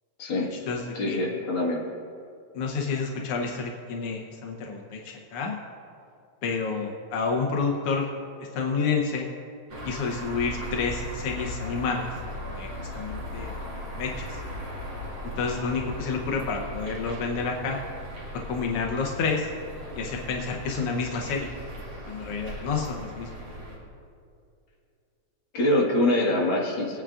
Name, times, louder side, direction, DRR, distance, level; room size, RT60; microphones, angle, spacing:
voice 1, 0.4-1.2 2.5-5.6 6.4-8.1 8.4-9.3 9.8-12.1 12.5-13.5 14.0-14.4 15.4-17.8 18.5-19.5 19.9-21.5 22.1-23.3, left 4 dB, 75° left, 1 dB, 1.3 m, -29 dB
voice 2, 0.9-1.8 25.5-27.0, left 1 dB, 45° left, -3 dB, 2.1 m, -24 dB
sound 1, 9.7-23.8, left 1 dB, 40° right, 3.4 m, -38 dB
20.5 x 9.1 x 2.4 m, 2.5 s
omnidirectional pair, 3.6 m